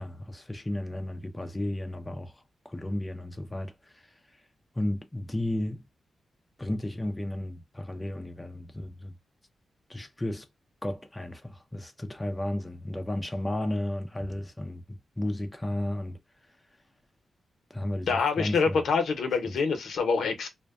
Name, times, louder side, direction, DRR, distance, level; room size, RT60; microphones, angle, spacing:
voice 1, 0.0-4.1 4.8-5.8 6.6-9.1 9.9-10.5 10.8-16.2 17.7-18.8 19.5-19.6, left 1 dB, 15° left, 0.4 m, -33 dB
voice 2, 18.1-20.5, left 5 dB, 80° left, 0.7 m, -26 dB
2.5 x 2.1 x 2.3 m
cardioid pair, 95°, 0 cm